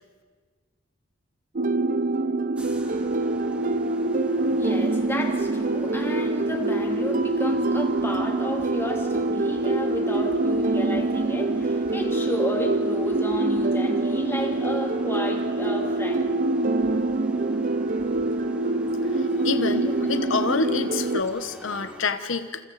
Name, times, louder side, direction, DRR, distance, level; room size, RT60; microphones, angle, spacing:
sound 1, 1.6-21.2, right 2 dB, 45° right, 0.7 m, -25 dB
sound 2, 2.5-22.0, equal, 5° right, 2.0 m, -44 dB
voice 1, 4.6-16.3 18.0-18.1 19.8-19.9, equal, 15° left, 0 dB, 3.1 m, -32 dB
voice 2, 19.4-22.6, left 4 dB, 90° left, 9 dB, 1.2 m, -27 dB
29.0 x 28.0 x 4.2 m, 1.6 s
head